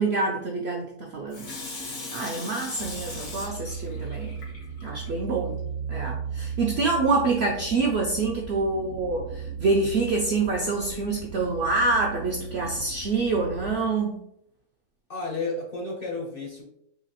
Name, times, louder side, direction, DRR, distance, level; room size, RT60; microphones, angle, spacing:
voice 1, 0.0-1.5 2.1-4.4 4.8-5.6 5.9-14.2, right 3 dB, 70° right, 0 dB, 0.6 m, -26 dB
Water tap faucet / Sink (filling or washing), 1.3-5.1 5.6-5.7, left 2 dB, 80° left, 1.6 m, -39 dB
sound 1, 2.8-13.8, right 6 dB, 85° right, 1.1 m, -36 dB
voice 2, 15.1-16.6, left 3 dB, 50° left, -2 dB, 0.7 m, -32 dB
3.8 x 2.8 x 2.9 m, 0.76 s
omnidirectional pair, 1.6 m